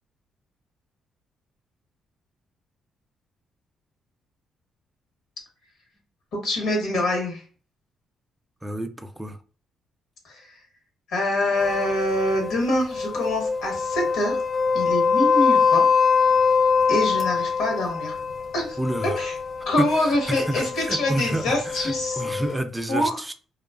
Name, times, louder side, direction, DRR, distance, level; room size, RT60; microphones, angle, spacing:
voice 1, 6.3-7.4 10.2-10.5 11.1-14.4 14.7-15.8 16.9-18.1 18.5-19.3 19.6-22.2 22.9-23.2, left 1 dB, 80° left, 1 dB, 1.0 m, -25 dB
voice 2, 8.6-9.4 18.8-19.3 19.8-23.3, right 1 dB, 10° right, 8 dB, 0.3 m, -30 dB
sound 1, 11.5-22.6, left 5 dB, 45° left, 0.5 m, -24 dB
2.3 x 2.3 x 2.3 m, 0.39 s
cardioid pair, 90°, 0 cm